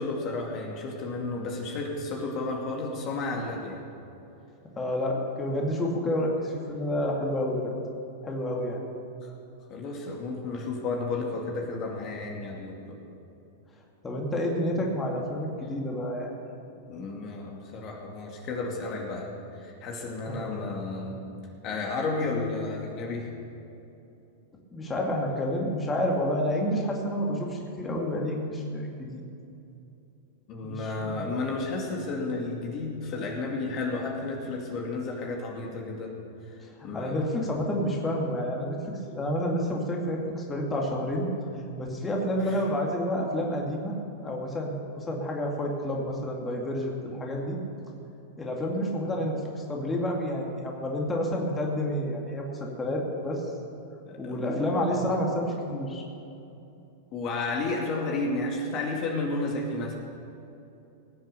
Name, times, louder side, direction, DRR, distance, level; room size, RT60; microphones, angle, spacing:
voice 1, 0.0-3.8 9.2-9.3 9.7-13.0 16.9-21.2 21.6-23.3 30.5-36.2 36.8-37.3 42.4-42.6 54.0-54.7 57.1-59.9, left 3 dB, 40° left, 0 dB, 2.4 m, -32 dB
voice 2, 4.8-7.7 8.2-8.8 14.0-16.3 20.3-20.6 24.7-29.2 30.6-31.3 36.6-41.3 41.8-44.0 44.2-47.6 48.4-53.4 54.2-56.0, left 1 dB, 20° left, -1 dB, 2.4 m, -29 dB
19.0 x 7.8 x 6.8 m, 2.8 s
hypercardioid pair, 110°, 0 cm